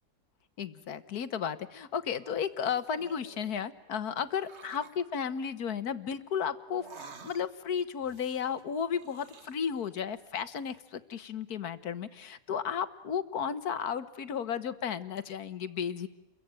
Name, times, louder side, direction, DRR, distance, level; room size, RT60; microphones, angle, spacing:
voice 1, 0.6-6.8 7.2-16.1, left 7 dB, 60° left, 13 dB, 1.6 m, -34 dB
sound 1, 2.5-3.6 4.3-5.0 6.7-7.7 8.0-9.9 10.2-10.8, right 5 dB, 40° right, 1.5 m, -52 dB
29.5 x 22.5 x 8.9 m, 0.93 s
omnidirectional pair, 1.9 m